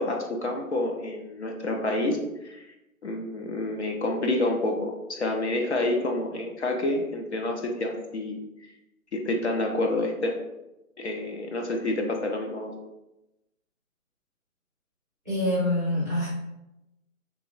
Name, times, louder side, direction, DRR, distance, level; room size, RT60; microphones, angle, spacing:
voice 1, 0.0-2.7 3.0-8.4 9.1-10.4 11.0-12.7, left 2 dB, 50° left, 2 dB, 0.6 m, -28 dB
voice 2, 15.2-16.3, left 1 dB, 15° right, -10 dB, 0.6 m, -25 dB
3.0 x 2.4 x 3.8 m, 0.94 s
hypercardioid pair, 170°, 43 cm